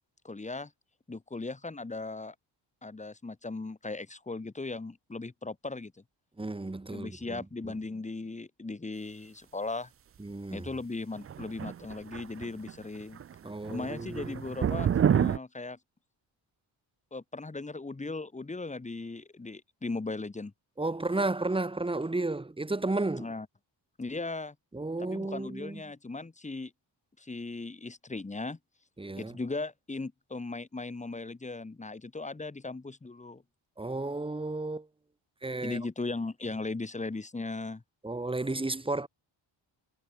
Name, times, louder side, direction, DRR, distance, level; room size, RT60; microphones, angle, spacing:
voice 1, 0.2-0.7 1.1-2.3 2.8-5.9 6.9-9.9 10.5-13.2 13.7-15.8 17.1-20.5 23.2-23.5 24.0-24.5 25.0-26.7 27.2-28.6 29.2-33.4 35.6-37.8, left 3 dB, 15° left, 2.6 m, -38 dB
voice 2, 6.4-7.4 7.7-7.8 10.2-10.7 13.4-14.3 20.8-23.3 24.7-25.8 29.0-29.4 33.8-34.9 35.4-35.8 38.0-39.1, right 2 dB, 10° right, 2.4 m, -33 dB
sound 1, 11.2-12.7 13.0-13.3 13.6-15.4, right 9 dB, 30° right, 0.4 m, -28 dB
wide cardioid pair, 175°, 47 cm